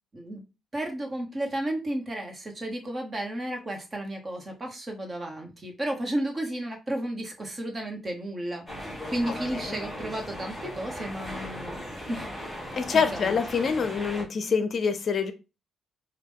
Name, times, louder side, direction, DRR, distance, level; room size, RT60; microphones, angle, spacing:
voice 1, 0.7-11.8 12.1-12.3 13.1-13.4, right 1 dB, 30° right, 1.3 m, -33 dB
sound 1, 8.7-14.2, equal, 10° left, 2.6 m, -37 dB
voice 2, 9.3-9.8 12.7-15.3, left 6 dB, 50° left, 0.6 m, -26 dB
5.0 x 2.4 x 3.6 m
cardioid pair, 90°, 0 cm